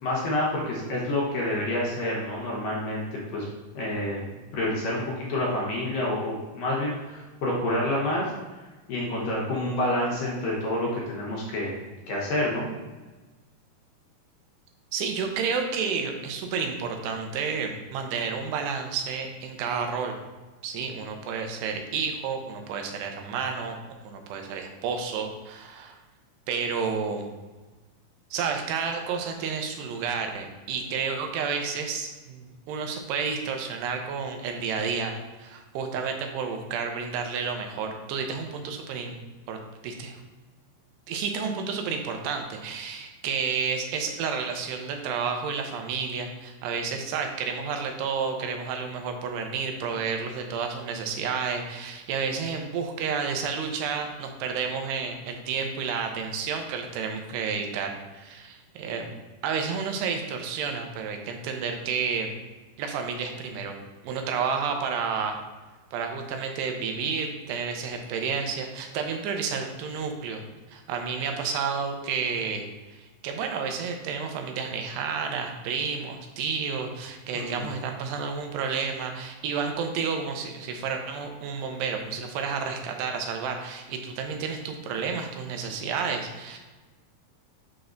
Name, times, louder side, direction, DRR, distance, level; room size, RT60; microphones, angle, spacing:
voice 1, 0.0-3.5 3.7-4.3 4.5-8.6 8.9-12.8 77.3-77.7, left 1 dB, 70° left, -4 dB, 2.4 m, -28 dB
voice 2, 14.9-20.2 20.6-23.8 24.0-26.0 26.5-27.3 28.3-39.2 39.5-39.6 39.8-40.2 41.1-62.3 62.8-63.8 64.0-65.4 65.9-70.4 70.7-86.6, right 5 dB, 85° right, 4 dB, 2.9 m, -31 dB
6.8 x 6.0 x 2.6 m, 1.3 s
omnidirectional pair, 4.7 m